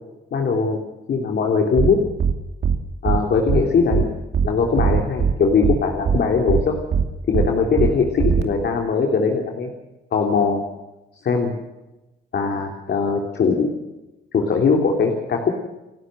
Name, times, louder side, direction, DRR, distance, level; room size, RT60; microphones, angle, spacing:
voice 1, 0.3-0.8 1.1-2.0 3.0-4.1 4.4-6.8 7.3-9.7 10.1-10.6 11.2-11.5 12.3-13.7 14.3-15.5, left 5 dB, 55° left, 2 dB, 3.5 m, -20 dB
sound 1, 1.8-1.9 2.2-2.3 2.6-2.8 3.1-3.2 3.5-3.6 3.9-4.0 4.3-4.5 4.8-5.3 5.6-5.8 6.1-6.2 6.5-6.6 6.9-7.0 7.3-7.5 7.8-7.9 8.2-8.4, right 6 dB, 55° right, 2.7 m, -19 dB
29.5 x 12.0 x 7.9 m, 1.0 s
cardioid pair, 90°, 20 cm